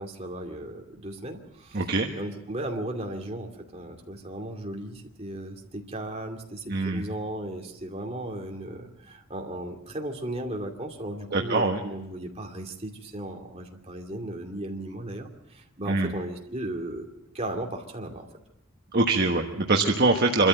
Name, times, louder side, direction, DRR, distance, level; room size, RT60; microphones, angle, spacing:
voice 1, 0.0-17.1 17.3-18.3, right 1 dB, 30° right, 1 dB, 2.5 m, -36 dB
voice 2, 1.7-2.1 6.7-7.0 11.3-11.8 15.9-16.1 18.9-20.5, right 3 dB, 45° right, 1 dB, 1.3 m, -23 dB
25.5 x 13.5 x 7.8 m, 0.90 s
head